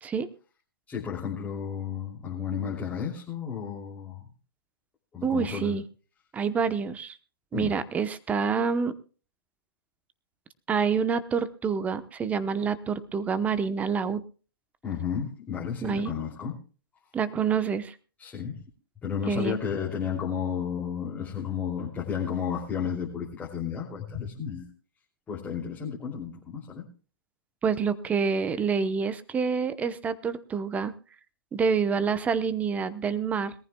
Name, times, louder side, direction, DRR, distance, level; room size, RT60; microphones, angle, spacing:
voice 1, 0.9-4.3 5.1-5.8 7.5-7.7 14.8-16.6 18.2-18.6 19.0-24.7 25.3-26.8, left 7 dB, 10° left, -4 dB, 3.0 m, -32 dB
voice 2, 5.2-5.8 6.3-7.2 7.5-8.9 10.7-14.2 15.8-16.1 17.1-18.0 19.3-19.6 27.6-30.9 31.5-33.5, right 6 dB, 10° right, 13 dB, 0.9 m, -27 dB
22.0 x 14.5 x 2.3 m, 0.37 s
hypercardioid pair, 135°, 12 cm